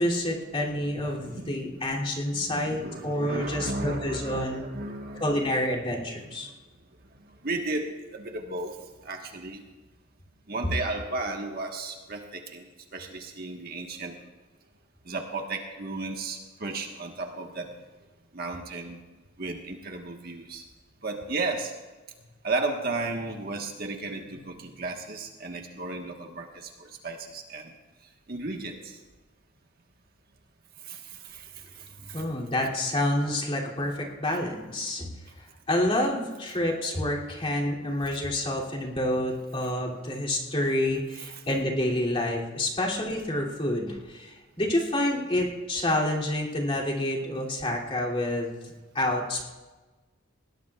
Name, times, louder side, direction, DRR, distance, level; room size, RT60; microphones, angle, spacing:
voice 1, 0.0-4.6 5.2-6.5 32.1-35.1 35.7-48.7 48.9-49.4, left 1 dB, 30° left, -4 dB, 2.9 m, -28 dB
voice 2, 1.0-2.0 2.3-5.6 6.2-6.5 7.3-9.6 10.5-12.7 12.9-14.2 15.0-17.7 18.3-19.0 19.4-20.6 21.0-21.7 22.4-27.7 28.3-29.0 30.8-32.3 41.3-41.4, right 3 dB, 50° right, 2 dB, 1.4 m, -34 dB
20.5 x 17.0 x 2.4 m, 1.2 s
head